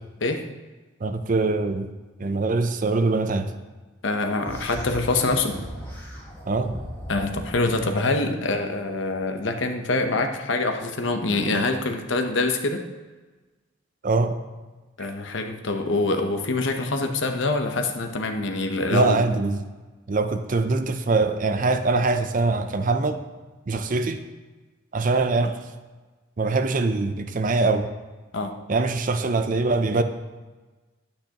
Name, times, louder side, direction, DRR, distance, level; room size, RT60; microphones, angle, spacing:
voice 1, 1.0-1.9 2.2-3.5 6.5-6.7 14.0-14.4 15.0-15.1 18.9-19.6 20.1-23.2 23.7-24.2 24.9-25.6 26.4-27.9 28.7-30.0, right 3 dB, 40° right, 8 dB, 0.5 m, -23 dB
voice 2, 4.0-5.6 7.1-12.8 15.0-19.2 28.3-28.5, left 2 dB, 70° left, 5 dB, 0.9 m, -25 dB
sound 1, 4.4-7.9, equal, 10° left, 1.6 m, -37 dB
10.5 x 8.6 x 2.9 m, 1.2 s
head